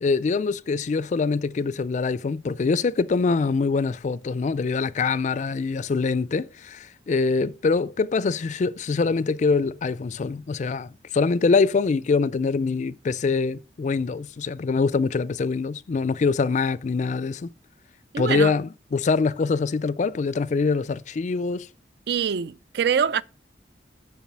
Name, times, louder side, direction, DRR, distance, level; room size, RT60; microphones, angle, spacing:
voice 1, 0.0-17.5 18.2-21.7, left 4 dB, 45° left, 0.4 m, -24 dB
voice 2, 18.1-18.5 22.1-23.2, right 7 dB, 65° right, 0.4 m, -24 dB
7.2 x 6.1 x 6.0 m
head